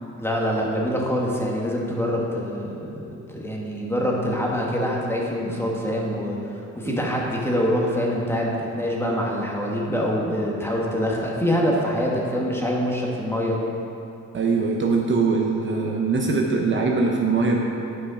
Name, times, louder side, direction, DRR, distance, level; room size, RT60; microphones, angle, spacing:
voice 1, 0.2-13.6, equal, 10° left, -3 dB, 1.5 m, -25 dB
voice 2, 14.3-17.6, right 4 dB, 40° right, 0 dB, 0.9 m, -22 dB
8.9 x 5.5 x 4.9 m, 2.6 s
cardioid pair, 90°, 30 cm